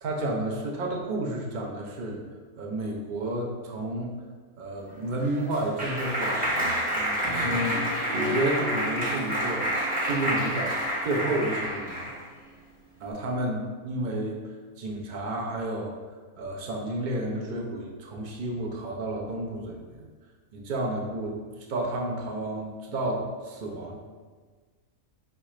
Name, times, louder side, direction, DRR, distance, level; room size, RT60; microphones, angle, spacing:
voice 1, 0.0-2.2 2.6-4.1 4.6-9.7 10.0-10.8 11.0-12.0 13.0-16.0 16.4-20.0 20.5-24.0, right 1 dB, 65° right, 0 dB, 0.4 m, -31 dB
Clapping, 4.9-12.2, equal, 10° right, 0.5 m, -28 dB
4.7 x 3.2 x 3.1 m, 1.5 s
omnidirectional pair, 1.6 m